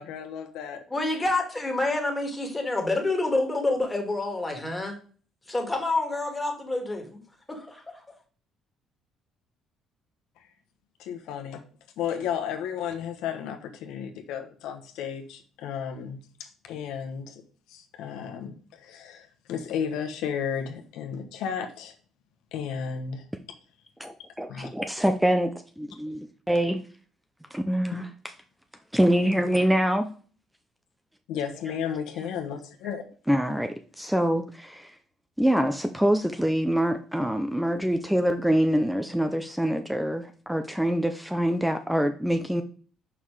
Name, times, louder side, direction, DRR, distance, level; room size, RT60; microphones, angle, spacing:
voice 1, 0.0-0.8 10.4-10.5 11.0-11.6 12.0-17.4 17.7-21.9 22.5-23.2 24.5-24.7 31.3-33.0, left 7 dB, 85° left, 1.0 m, -33 dB
voice 2, 0.9-5.0 5.5-7.2 7.5-8.0, left 2 dB, 15° left, 1.7 m, -28 dB
voice 3, 24.0-26.8 27.5-28.1 28.9-30.1 33.3-34.9 35.4-42.6, equal, 5° right, 0.5 m, -25 dB
5.6 x 4.6 x 4.8 m
cardioid pair, 125°, 0 cm